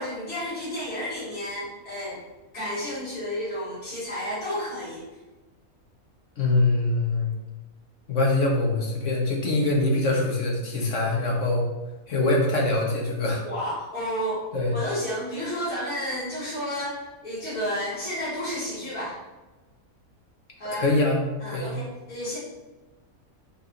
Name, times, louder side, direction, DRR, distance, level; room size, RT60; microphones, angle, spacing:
voice 1, 0.0-2.2 2.5-5.0 13.4-14.4 14.7-19.1 20.6-20.8 21.4-22.4, equal, 75° left, -12 dB, 2.9 m, -31 dB
voice 2, 6.4-7.3 8.1-11.6 12.1-13.4 14.5-14.8 20.7-21.2 21.5-21.8, left 2 dB, 60° left, -2 dB, 1.6 m, -23 dB
5.6 x 4.8 x 4.0 m, 1.1 s
omnidirectional pair, 1.5 m